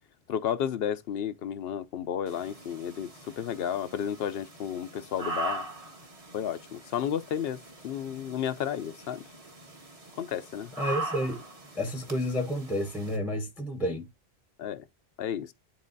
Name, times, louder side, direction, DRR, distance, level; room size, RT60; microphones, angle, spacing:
voice 1, 0.3-5.7 6.3-9.2 10.2-10.7 14.6-14.8 15.2-15.5, left 9 dB, 65° left, 0.8 m, -32 dB
sound 1, 2.3-13.2, right 2 dB, 35° right, 1.3 m, -41 dB
voice 2, 10.8-11.4 11.8-14.1, equal, ahead, 0.9 m, -30 dB
10.5 x 4.1 x 2.6 m
omnidirectional pair, 1.1 m